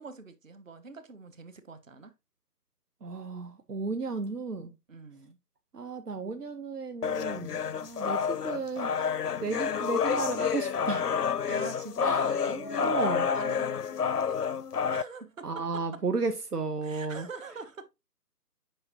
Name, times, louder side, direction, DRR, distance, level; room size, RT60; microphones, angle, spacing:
voice 1, 0.0-2.1 4.9-5.4 11.5-14.4 14.9-16.0 16.8-17.9, right 4 dB, 55° right, 1.4 m, -44 dB
voice 2, 3.0-4.7 5.7-8.9 9.4-11.1 12.0-12.3 12.8-13.3 15.4-17.3, right 4 dB, 70° right, 1.0 m, -33 dB
sound 1, 7.0-15.0, left 7 dB, 75° left, 0.6 m, -29 dB
8.6 x 5.6 x 2.8 m
figure-of-eight pair, 150°, 48 cm